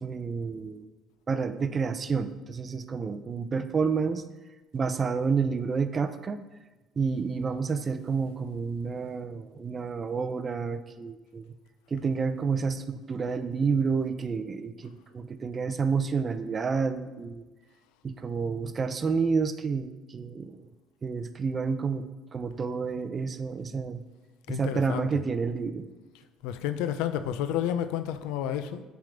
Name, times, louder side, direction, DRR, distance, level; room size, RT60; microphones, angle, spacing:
voice 1, 0.0-0.9 1.3-4.2 4.7-6.4 7.0-11.5 11.9-17.4 18.0-20.7 21.0-24.0 24.5-25.9, right 5 dB, 30° right, 0.4 m, -29 dB
voice 2, 24.5-25.1 26.4-28.8, left 10 dB, 85° left, 0.4 m, -30 dB
7.5 x 3.5 x 5.0 m
cardioid pair, 115°, 0 cm